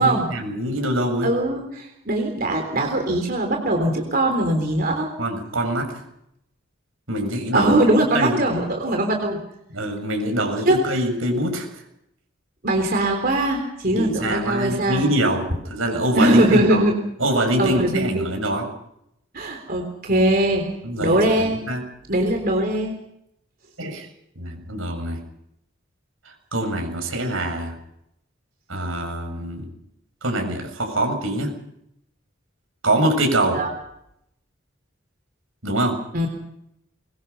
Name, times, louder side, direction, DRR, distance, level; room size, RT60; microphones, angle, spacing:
voice 1, 0.0-1.3 5.2-6.0 7.1-7.8 8.1-8.3 9.7-11.7 13.9-16.8 17.2-18.7 20.8-21.8 23.8-24.1 24.4-25.2 26.3-27.8 28.7-29.7 30.2-31.5 32.8-33.6 35.6-36.0, right 1 dB, 85° right, 4 dB, 7.5 m, -24 dB
voice 2, 1.2-5.1 7.5-9.4 10.7-10.8 12.6-15.1 16.1-16.9 17.6-18.3 19.3-20.6 21.0-21.7 22.1-23.0 33.5-33.7 36.1-36.3, right 1 dB, 50° right, 3 dB, 3.8 m, -21 dB
24.5 x 23.0 x 5.6 m, 0.76 s
head